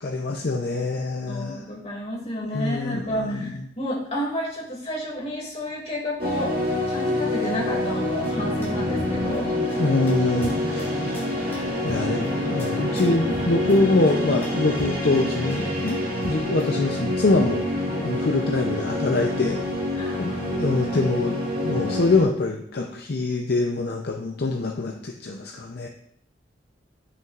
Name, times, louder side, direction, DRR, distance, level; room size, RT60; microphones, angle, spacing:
voice 1, 0.0-1.6 2.5-3.5 9.8-10.9 11.4-16.0 16.2-17.6 18.0-19.6 20.2-25.9, left 2 dB, 60° left, 2 dB, 0.6 m, -24 dB
voice 2, 1.3-6.5 6.9-9.8 11.9-12.4 18.1-18.4 19.9-20.8, left 1 dB, 35° left, -3 dB, 2.4 m, -31 dB
sound 1, 6.2-22.2, left 1 dB, 55° right, 2.2 m, -27 dB
sound 2, 8.0-16.6, equal, 15° left, 2.8 m, -38 dB
10.5 x 6.2 x 2.5 m, 0.68 s
head